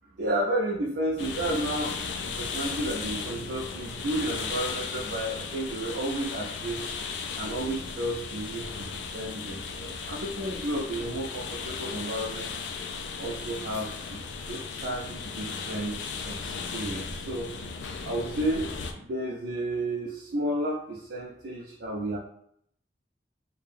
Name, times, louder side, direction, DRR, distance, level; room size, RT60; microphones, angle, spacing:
voice 1, 0.2-1.9 2.2-6.8 7.3-12.5 13.2-17.5 18.0-18.7 19.0-22.2, right 1 dB, 70° right, -3 dB, 0.5 m, -32 dB
sound 1, 1.2-18.9, left 5 dB, 85° left, 0.4 m, -36 dB
2.6 x 2.2 x 3.3 m, 0.69 s
head